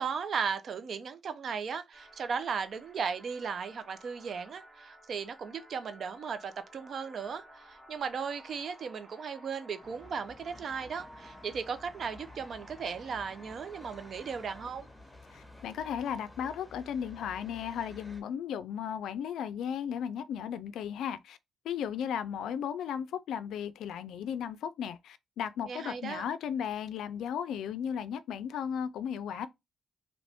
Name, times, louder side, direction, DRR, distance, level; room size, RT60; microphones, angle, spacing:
voice 1, 0.0-14.9 25.6-26.2, right 6 dB, 55° right, 0.5 m, -36 dB
sound 1, 1.9-14.6, equal, 10° right, 1.0 m, -55 dB
sound 2, 9.8-18.2, left 1 dB, 10° left, 1.2 m, -52 dB
voice 2, 15.3-21.4 21.6-29.5, left 8 dB, 85° left, 0.3 m, -35 dB
2.9 x 2.6 x 3.4 m
cardioid pair, 90°, 0 cm